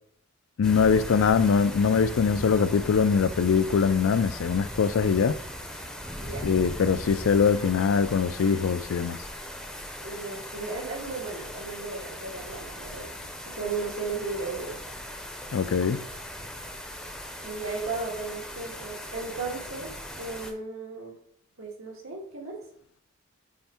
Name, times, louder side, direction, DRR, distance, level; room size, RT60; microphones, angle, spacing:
voice 1, 0.6-5.4 6.4-9.2 15.5-16.0, left 6 dB, 75° left, 0.4 m, -22 dB
sound 1, 0.6-20.5, equal, 5° left, 0.6 m, -39 dB
voice 2, 6.2-6.5 10.0-13.1 13.5-14.8 17.4-19.9 20.2-21.2 21.6-22.6, right 3 dB, 80° right, 1.9 m, -35 dB
5.6 x 4.3 x 4.4 m
head